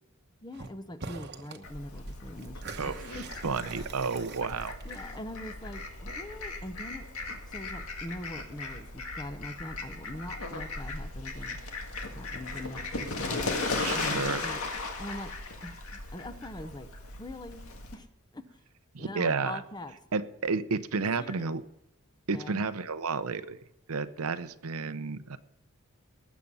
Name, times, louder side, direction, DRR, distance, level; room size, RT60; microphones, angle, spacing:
voice 1, 0.4-3.2 4.8-7.0 7.5-11.6 12.1-13.5 13.9-14.6 15.0-15.3 15.6-16.9 17.2-17.6 17.9-18.1 18.3-18.4 19.0-20.0 20.9-21.5 22.3-22.6, left 1 dB, 20° left, 9 dB, 0.8 m, -42 dB
sound 1, 0.5-0.7 1.0-1.6 1.9-5.3, right 4 dB, 50° right, 1.0 m, -45 dB
Fowl, 1.6-17.9, left 3 dB, 80° left, 1.9 m, -37 dB
voice 2, 3.4-4.8 13.8-14.4 18.9-19.6 20.1-21.6 22.3-23.6 23.9-25.4, right 4 dB, 85° right, 12 dB, 0.8 m, -31 dB
19.0 x 7.5 x 5.5 m, 0.81 s
head